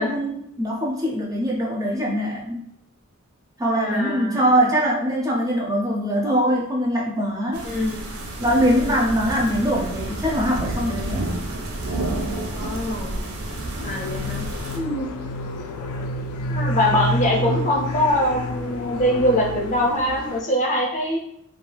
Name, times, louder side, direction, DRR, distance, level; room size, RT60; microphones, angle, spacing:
voice 1, 0.0-2.6 3.6-7.7 8.4-11.3, equal, 15° right, -2 dB, 0.4 m, -22 dB
voice 2, 3.7-4.4 7.6-8.0 12.5-13.2 13.8-14.4 14.7-15.2 16.5-21.2, equal, 35° left, -1 dB, 0.5 m, -23 dB
sound 1, 7.5-14.8, right 2 dB, 75° right, 0.5 m, -30 dB
sound 2, 13.8-20.4, left 2 dB, 85° left, 0.3 m, -29 dB
2.3 x 2.2 x 3.2 m, 0.73 s
head